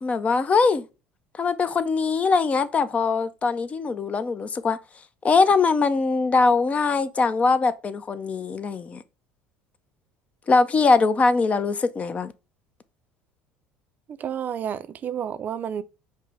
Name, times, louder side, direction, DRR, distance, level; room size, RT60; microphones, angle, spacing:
voice 1, 0.0-0.8 1.4-4.8 5.2-9.0 10.5-12.3, left 4 dB, 30° left, 0.5 m, -22 dB
voice 2, 14.2-15.8, right 8 dB, 40° right, 0.4 m, -30 dB
5.4 x 2.1 x 4.7 m
supercardioid pair, 95°, 5 cm